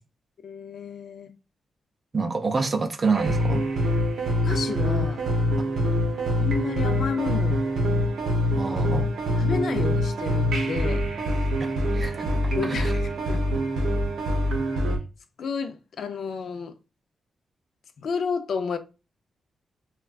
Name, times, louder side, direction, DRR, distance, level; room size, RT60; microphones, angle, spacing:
voice 1, 0.4-1.3 4.4-5.2 6.4-7.6 8.7-9.0 9.4-11.1 12.5-13.4 15.4-16.7 18.0-18.8, left 5 dB, 70° left, 0.4 m, -31 dB
voice 2, 2.1-3.6 5.6-5.7 8.5-9.1 11.6-12.9, right 4 dB, 40° right, 0.5 m, -28 dB
sound 1, 3.1-15.0, equal, 90° right, 0.6 m, -25 dB
3.3 x 2.2 x 2.3 m
cardioid pair, 90°, 0 cm